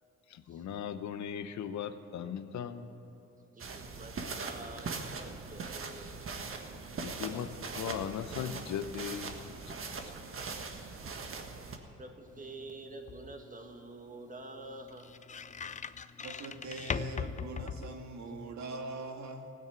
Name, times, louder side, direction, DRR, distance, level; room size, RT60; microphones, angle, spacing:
voice 1, 0.3-2.9 7.0-9.5, left 8 dB, 70° left, 10 dB, 0.9 m, -38 dB
voice 2, 3.5-6.2 12.0-15.1, right 2 dB, 25° right, 4 dB, 1.8 m, -48 dB
sound 1, 3.6-11.8, right 4 dB, 45° right, 1.5 m, -41 dB
sound 2, 12.3-18.5, left 6 dB, 25° left, 0.5 m, -42 dB
voice 3, 16.2-19.5, right 3 dB, 65° right, 4 dB, 1.8 m, -42 dB
16.5 x 9.5 x 8.9 m, 2.8 s
cardioid pair, 90°, 30 cm